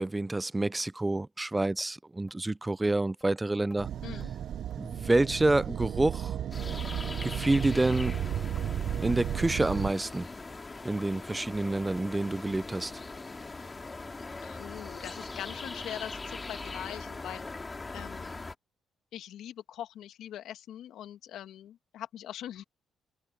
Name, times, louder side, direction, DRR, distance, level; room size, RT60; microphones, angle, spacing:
voice 1, 0.0-3.9 4.8-6.3 7.2-8.2 9.0-10.3 10.8-12.9, right 2 dB, 15° right, 0.4 m, -28 dB
sound 1, 1.8-1.9 2.3-2.4 2.8-2.9 3.2-3.3 3.7-3.8 4.2-4.3 4.7-4.9 5.2-5.4 5.6-6.2 6.6-6.9 7.1-7.3 7.6-7.8 8.0-8.2 8.5-8.7 9.0-9.2 9.5-9.7 10.0-10.2 10.5-10.6 11.0-11.1 11.5-11.7 12.0-12.1 12.5-12.6 13.0-13.1 13.5-13.6 14.0-14.1, left 1 dB, 5° left, 4.1 m, -59 dB
sound 2, 3.8-9.9, right 10 dB, 65° right, 0.6 m, -34 dB
voice 2, 4.0-4.3 14.4-17.4 17.9-18.3 19.1-22.6, left 11 dB, 80° left, 2.1 m, -42 dB
sound 3, 6.5-18.5, left 3 dB, 25° left, 2.6 m, -41 dB
cardioid pair, 90°, 0 cm